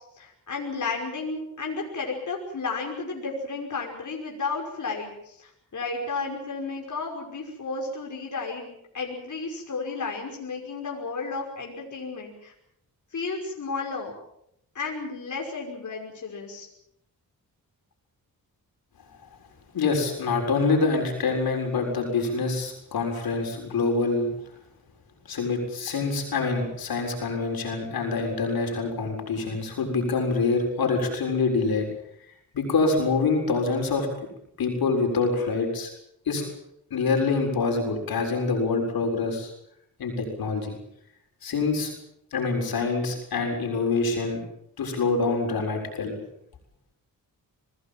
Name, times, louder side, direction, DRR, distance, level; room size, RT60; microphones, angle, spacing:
voice 1, 0.2-12.5 13.1-14.1 14.7-16.7, left 4 dB, 55° left, 0 dB, 5.7 m, -33 dB
voice 2, 19.7-24.3 25.3-31.9 32.5-34.1 34.6-35.9 36.3-36.5 36.9-39.5 40.0-40.8 41.4-41.9 42.3-44.4 44.8-46.2, left 4 dB, 80° left, 3 dB, 7.0 m, -25 dB
26.0 x 19.0 x 7.5 m, 0.76 s
cardioid pair, 80°, 36 cm